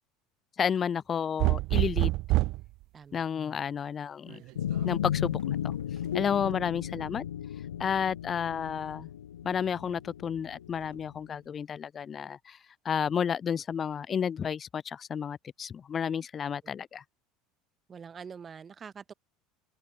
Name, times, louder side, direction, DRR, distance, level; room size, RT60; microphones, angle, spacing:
voice 1, 0.6-2.1 3.1-4.4 4.8-5.7 6.1-7.2 7.8-9.1 9.4-12.6 12.8-17.0, left 7 dB, 35° left, 1.1 m, -31 dB
sound 1, 1.4-2.7 4.3-4.9, right 20 dB, 55° right, 0.5 m, -26 dB
voice 2, 2.9-3.3 17.9-19.1, right 6 dB, 30° right, 4.9 m, -45 dB
sound 2, 4.5-11.1, left 10 dB, 80° left, 0.5 m, -35 dB
open air
hypercardioid pair, 75°, 0 cm